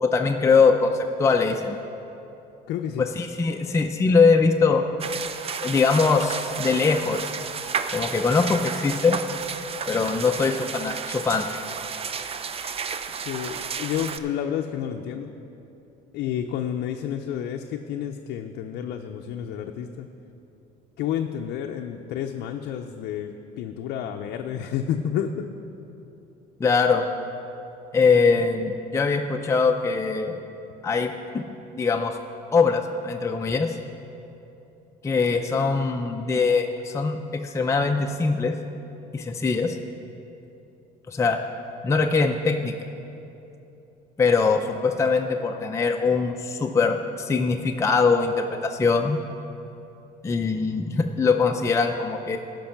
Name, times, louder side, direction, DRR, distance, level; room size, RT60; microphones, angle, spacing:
voice 1, 0.0-1.8 3.0-4.8 5.6-7.3 7.9-9.2 9.9-11.5 26.6-27.1 27.9-30.4 30.8-31.4 31.8-32.2 32.5-33.8 35.0-38.5 39.1-39.8 41.1-41.4 41.8-42.7 44.2-49.2 50.2-52.4, left 4 dB, 15° left, 3 dB, 0.5 m, -22 dB
voice 2, 2.7-3.1 13.2-15.3 16.1-20.1 21.0-25.5, left 9 dB, 80° left, 3 dB, 0.5 m, -30 dB
sound 1, 5.0-14.2, right 6 dB, 35° right, 0.5 m, -32 dB
14.0 x 5.3 x 5.9 m, 2.9 s
cardioid pair, 110°, 17 cm